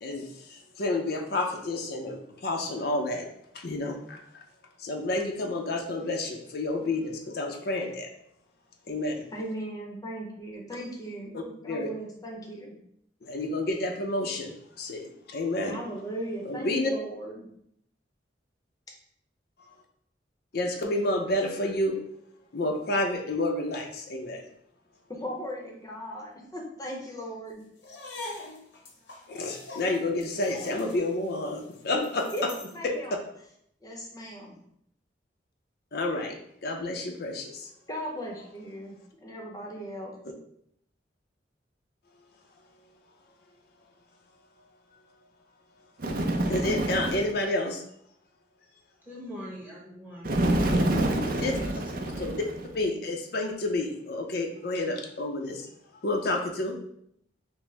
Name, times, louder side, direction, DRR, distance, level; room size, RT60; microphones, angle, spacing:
voice 1, 0.0-3.3 3.5-4.4 4.8-8.1 8.9-9.2 11.3-11.9 13.2-15.8 16.4-16.9 19.6-19.7 20.5-22.0 22.5-24.4 29.3-32.5 32.8-32.9 35.9-36.4 36.6-37.7 46.5-47.8 51.4-51.5 52.2-52.4 52.7-55.7 55.9-56.8, left 2 dB, 60° left, 2 dB, 0.5 m, -30 dB
voice 2, 9.3-12.8 15.7-17.5 25.1-27.7 31.9-32.0 32.3-32.5 32.7-33.2 33.8-34.6 37.9-40.2, equal, 20° left, -1 dB, 0.7 m, -37 dB
sound 1, 27.8-32.8, left 2 dB, 85° left, 1.0 m, -43 dB
Bird, 46.0-47.4 50.2-52.8, right 1 dB, 55° right, 0.5 m, -27 dB
voice 3, 49.0-50.4 51.2-52.7, equal, 10° right, -5 dB, 1.1 m, -43 dB
5.9 x 2.1 x 3.3 m, 0.72 s
head